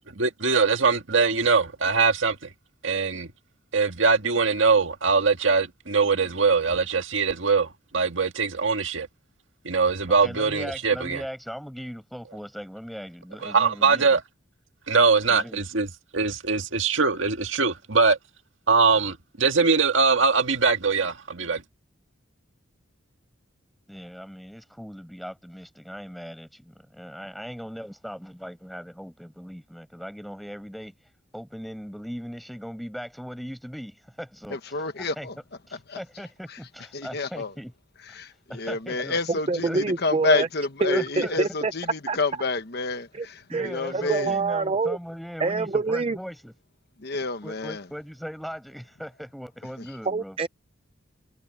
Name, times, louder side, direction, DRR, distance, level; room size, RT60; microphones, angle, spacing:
voice 1, 0.1-2.5 2.8-3.3 3.7-9.1 9.6-11.2 13.4-14.2 14.9-15.9 16.1-18.2 18.7-21.6, right 4 dB, 75° right, 1.9 m, -22 dB
voice 2, 10.2-14.1 15.3-15.6 23.9-30.9 31.3-35.3 35.7-37.7 38.5-39.2 39.6-40.0 40.9-41.4 43.5-46.5 47.4-50.4, equal, ahead, 6.6 m, -39 dB
voice 3, 34.5-35.3 35.9-36.0 36.9-37.5 38.2-43.4 43.7-44.4 47.0-47.8, left 3 dB, 55° left, 1.2 m, -28 dB
voice 4, 39.5-40.5 40.8-41.7 42.1-42.2 43.1-43.3 43.5-45.0 45.4-46.2 50.1-50.5, right 3 dB, 30° right, 0.5 m, -26 dB
head